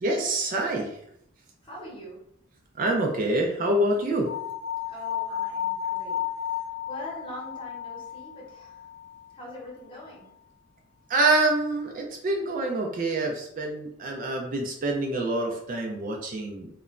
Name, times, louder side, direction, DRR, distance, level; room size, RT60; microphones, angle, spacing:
voice 1, 0.0-1.0 2.8-4.3 11.1-16.7, right 2 dB, 40° right, 1 dB, 0.3 m, -26 dB
voice 2, 1.6-2.2 4.8-8.8 9.3-10.3, left 1 dB, 25° left, -4 dB, 0.8 m, -43 dB
sound 1, 4.2-9.3, left 10 dB, 85° left, 0.7 m, -33 dB
2.9 x 2.1 x 2.4 m, 0.73 s
head